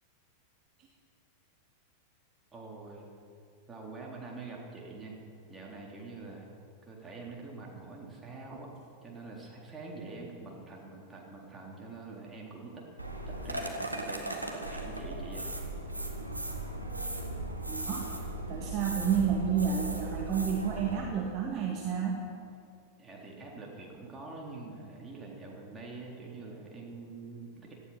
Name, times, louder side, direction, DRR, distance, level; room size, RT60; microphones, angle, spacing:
voice 1, 2.5-3.1 3.7-5.1 5.5-6.5 6.8-8.7 9.0-12.9 13.3-15.5 23.0-27.7, right 3 dB, 15° right, -2 dB, 3.7 m, -45 dB
sound 1, 13.0-21.0, right 1 dB, 85° right, 1.6 m, -37 dB
voice 2, 17.7-18.0 18.5-22.2, right 7 dB, 35° right, 0 dB, 1.7 m, -30 dB
18.0 x 13.0 x 5.9 m, 2.5 s
figure-of-eight pair, 90°, 0 cm